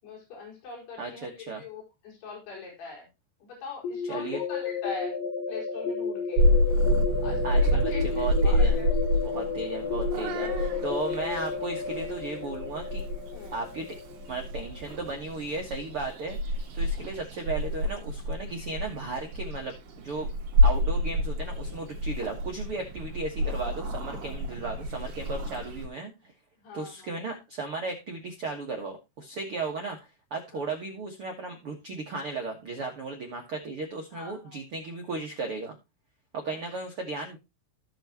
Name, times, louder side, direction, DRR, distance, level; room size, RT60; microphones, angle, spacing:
voice 1, 0.0-3.1 3.4-5.2 5.5-6.4 7.2-8.9 10.4-10.7 13.3-13.7 24.3-24.8 26.6-27.1 30.5-30.7 34.1-34.6 36.5-36.6, left 4 dB, 65° left, -2 dB, 6.5 m, -43 dB
voice 2, 1.0-1.6 4.1-4.4 7.4-8.8 9.2-13.0 13.5-13.9 14.3-19.7 20.0-20.3 20.6-26.1 26.7-30.0 30.3-35.7 36.3-37.4, right 3 dB, 70° right, 2 dB, 1.3 m, -35 dB
sound 1, 3.8-15.6, left 6 dB, 85° left, 3.5 m, -33 dB
Purr / Meow, 6.4-25.9, equal, 55° right, 2.9 m, -28 dB
16.0 x 6.0 x 2.9 m, 0.24 s
omnidirectional pair, 5.2 m